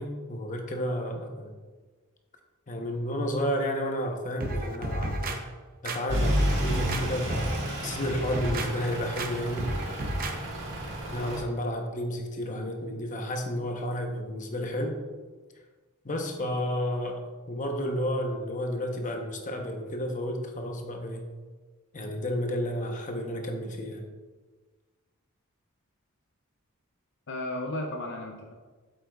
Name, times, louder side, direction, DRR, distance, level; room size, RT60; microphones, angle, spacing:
voice 1, 0.0-1.6 2.7-5.5 5.8-9.8 11.1-15.0 16.0-17.2 17.5-21.2 21.9-24.0, equal, 35° left, 3 dB, 0.9 m, -31 dB
sound 1, 4.4-5.4 5.8-7.0 7.3-7.7 8.1-8.7 9.2-9.3 9.6-10.3 10.7-10.8, right 1 dB, 40° right, 0.7 m, -32 dB
Truck / Idling, 6.1-11.4, equal, 55° right, 1.8 m, -31 dB
voice 2, 27.3-28.5, left 1 dB, 55° left, 2 dB, 0.6 m, -35 dB
8.2 x 7.8 x 2.4 m, 1.4 s
head